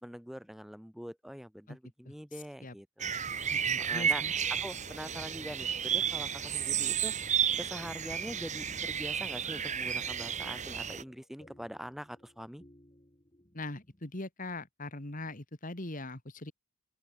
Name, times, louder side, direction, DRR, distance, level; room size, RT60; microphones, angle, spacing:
voice 1, 0.0-3.2 3.8-4.2 4.5-7.1 7.6-12.6, equal, ahead, 1.0 m, -44 dB
voice 2, 2.1-2.7 3.5-4.3 13.5-16.5, left 2 dB, 40° left, 2.3 m, -41 dB
sound 1, 3.0-11.0, right 8 dB, 35° right, 1.8 m, -32 dB
sound 2, 5.8-14.1, equal, 25° left, 3.6 m, -59 dB
open air
head